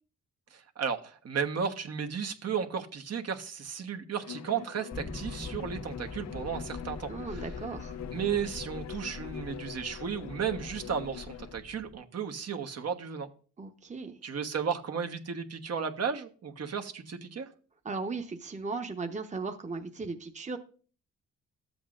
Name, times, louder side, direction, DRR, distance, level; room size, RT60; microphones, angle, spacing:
voice 1, 0.5-7.4 8.1-13.3 14.2-17.5, right 7 dB, 55° right, 5 dB, 1.3 m, -34 dB
Bowed string instrument, 4.2-11.6, left 11 dB, 60° left, 0.5 m, -44 dB
sound 1, 4.9-12.0, left 3 dB, 20° left, 0.8 m, -43 dB
voice 2, 7.1-8.0 13.6-14.2 17.8-20.6, right 4 dB, 25° right, 5 dB, 1.1 m, -37 dB
12.5 x 7.9 x 2.6 m, 0.41 s
cardioid pair, 80°, 30 cm